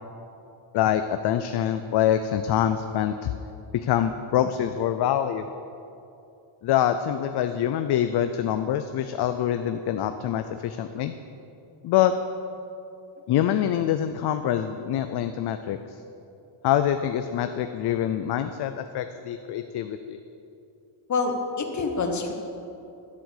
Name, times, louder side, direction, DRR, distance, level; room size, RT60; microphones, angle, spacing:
voice 1, 0.7-3.3 3.7-5.4 6.6-11.1 11.8-12.1 13.3-15.8 16.6-20.2, left 10 dB, 55° left, 9 dB, 0.5 m, -25 dB
voice 2, 21.1-22.3, left 4 dB, 35° left, 4 dB, 1.3 m, -26 dB
12.0 x 7.6 x 6.5 m, 2.7 s
cardioid pair, 145°, 49 cm